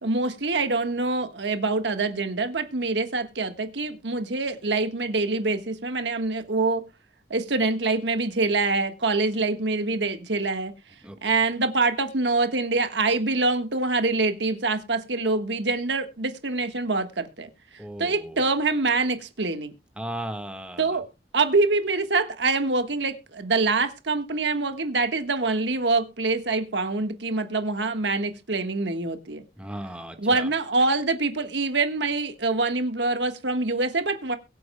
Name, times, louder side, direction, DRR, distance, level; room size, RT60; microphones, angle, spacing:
voice 1, 0.0-6.8 7.3-10.7 11.2-17.5 18.0-19.7 20.8-21.0 21.3-29.4 30.2-34.4, right 3 dB, 90° right, 1.4 m, -25 dB
voice 2, 17.8-18.4 20.0-21.0 29.6-30.5, right 1 dB, 5° right, 1.5 m, -36 dB
22.5 x 7.9 x 2.2 m
head